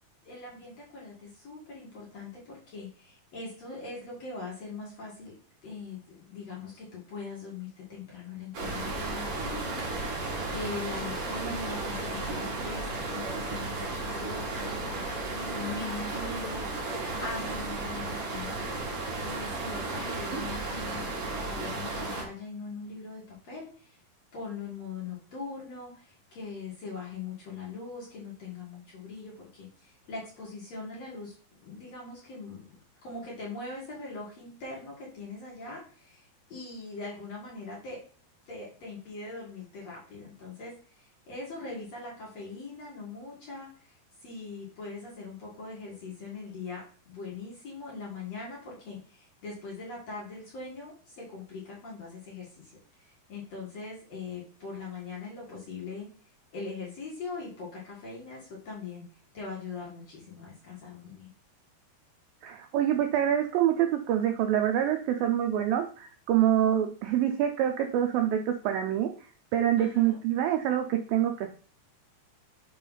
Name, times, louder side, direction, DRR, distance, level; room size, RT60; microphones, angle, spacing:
voice 1, 0.2-5.3 5.6-24.0 24.3-31.3 31.6-38.0 38.5-56.1 56.5-59.1 59.3-61.3 69.8-70.2, left 4 dB, 50° left, -5 dB, 2.2 m, -41 dB
sound 1, 8.5-22.2, right 2 dB, 55° right, 1.7 m, -34 dB
voice 2, 62.4-69.1 69.5-71.5, right 10 dB, 85° right, 5 dB, 2.0 m, -26 dB
6.1 x 3.3 x 5.4 m, 0.42 s
omnidirectional pair, 4.7 m